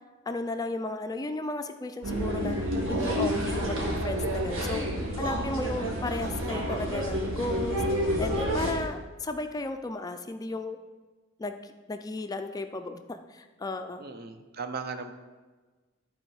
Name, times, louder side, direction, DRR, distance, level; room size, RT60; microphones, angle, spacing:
voice 1, 0.3-2.6 2.9-4.8 5.2-7.8 8.2-10.8 11.4-14.0, left 2 dB, 20° left, 7 dB, 0.3 m, -34 dB
sound 1, 2.0-8.7, equal, 90° right, 1.8 m, -29 dB
voice 2, 14.0-15.1, right 4 dB, 50° right, 8 dB, 0.7 m, -38 dB
12.0 x 4.3 x 4.7 m, 1.3 s
head